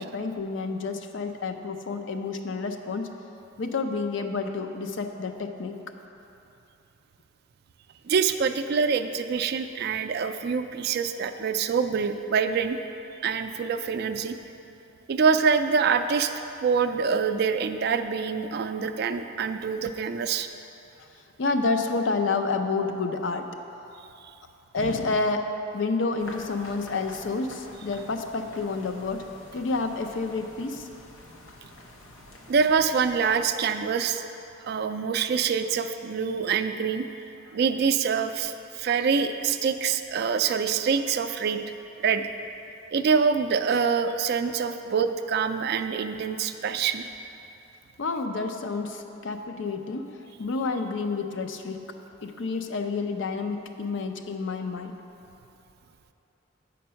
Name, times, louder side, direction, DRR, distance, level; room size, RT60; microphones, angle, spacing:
voice 1, 0.0-3.1 3.6-5.8 21.0-21.1 21.4-23.5 24.7-25.5 25.7-29.2 29.5-30.9 48.0-51.8 52.2-54.9, left 3 dB, 70° left, 6 dB, 0.5 m, -29 dB
voice 2, 8.1-12.8 13.2-14.4 15.1-16.3 16.6-20.5 32.5-34.2 34.6-37.0 37.5-41.6 42.0-42.3 42.9-47.1, right 6 dB, 55° right, 9 dB, 0.3 m, -25 dB
sound 1, 26.2-34.1, left 1 dB, 90° left, 0.9 m, -48 dB
7.7 x 5.2 x 5.6 m, 2.9 s
head